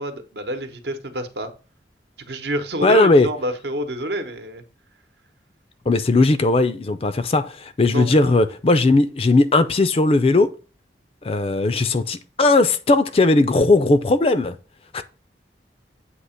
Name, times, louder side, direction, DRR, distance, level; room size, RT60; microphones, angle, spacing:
voice 1, 0.0-1.5 2.2-4.6 7.9-8.4, right 1 dB, 70° right, 0.9 m, -28 dB
voice 2, 2.8-3.3 5.9-10.5 11.2-14.6 14.9-15.0, left 2 dB, 35° left, 0.4 m, -17 dB
8.0 x 2.9 x 5.6 m
head